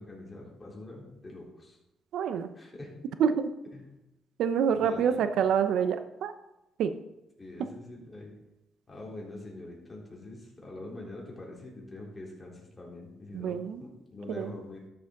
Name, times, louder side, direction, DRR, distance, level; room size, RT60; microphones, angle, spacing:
voice 1, 0.0-1.8 2.5-2.9 3.7-3.8 4.7-5.2 7.4-8.3 8.9-14.8, left 2 dB, 20° left, -3 dB, 3.6 m, -44 dB
voice 2, 2.1-2.5 3.2-3.5 4.4-6.3 6.8-6.9 13.3-13.8 14.3-14.5, right 7 dB, 75° right, 10 dB, 0.7 m, -27 dB
12.5 x 7.0 x 3.8 m, 0.93 s
cardioid pair, 90°, 0 cm